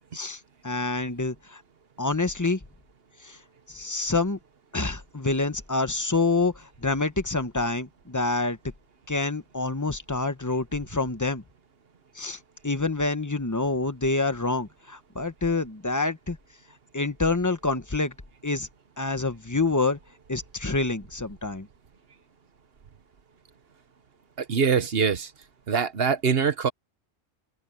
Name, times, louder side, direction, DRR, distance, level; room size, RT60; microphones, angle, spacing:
voice 1, 0.1-1.6 2.0-2.6 3.2-3.4 3.7-4.4 4.7-8.6 9.1-11.4 12.1-16.4 16.9-18.1 18.4-18.7 19.0-20.0 20.3-21.7, left 3 dB, 15° left, 0.9 m, -27 dB
voice 2, 24.4-25.3 25.7-26.7, right 6 dB, 60° right, 1.2 m, -23 dB
omnidirectional pair, 1.2 m